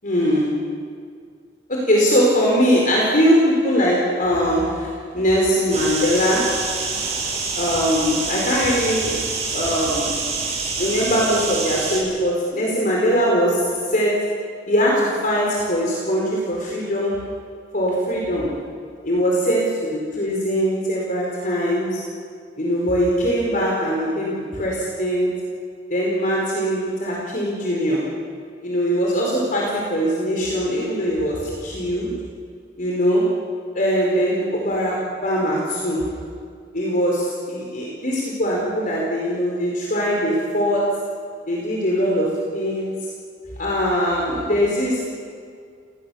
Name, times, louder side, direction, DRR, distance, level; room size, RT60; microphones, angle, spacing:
voice 1, 0.0-0.6 1.7-6.6 7.5-9.2 9.5-10.2 10.8-14.3 14.7-17.3 17.7-18.6 19.0-22.1 22.6-25.3 25.9-28.1 28.6-32.2 32.8-33.3 33.7-36.1 36.7-41.0 41.5-43.1 43.6-45.1, equal, 50° left, -3 dB, 4.6 m, -21 dB
sound 1, 5.7-12.0, right 4 dB, 35° right, 7.9 m, -26 dB
28.5 x 19.0 x 7.1 m, 2.1 s
head